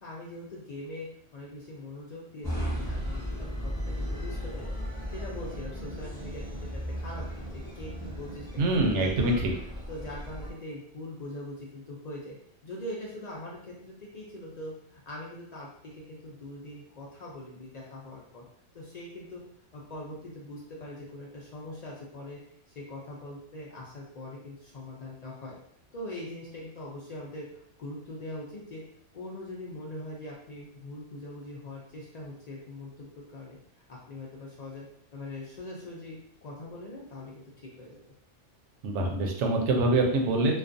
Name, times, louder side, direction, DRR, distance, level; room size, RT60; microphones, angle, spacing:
voice 1, 0.0-4.8 5.1-9.3 9.9-12.3 12.6-18.4 18.7-19.4 19.7-22.4 22.7-25.6 25.9-28.8 29.1-36.2 36.4-38.0, left 1 dB, 65° left, -4 dB, 0.4 m, -42 dB
sound 1, 2.4-10.5, equal, 5° left, 0.9 m, -36 dB
voice 2, 8.6-9.3 38.8-40.6, right 2 dB, 75° right, 1 dB, 0.9 m, -25 dB
2.3 x 2.3 x 2.5 m, 0.68 s
omnidirectional pair, 1.2 m